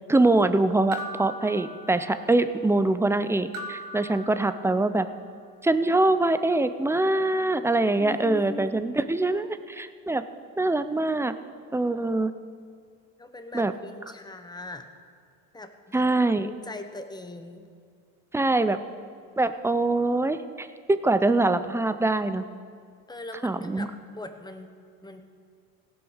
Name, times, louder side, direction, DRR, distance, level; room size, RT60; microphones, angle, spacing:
voice 1, 0.1-5.1 5.6-10.2 10.6-11.3 11.7-12.3 13.5-13.7 15.9-16.5 18.3-18.8 19.4-22.4 23.4-23.9, right 2 dB, 5° right, 11 dB, 0.4 m, -24 dB
sound 1, 0.9-2.4 3.5-5.0, right 1 dB, 60° right, 1.3 m, -40 dB
voice 2, 8.0-8.9 13.2-14.9 15.5-16.1 16.4-17.7 23.1-24.7 25.0-25.2, left 2 dB, 10° left, 7 dB, 0.9 m, -41 dB
16.5 x 6.2 x 6.4 m, 2.2 s
cardioid pair, 110°, 38 cm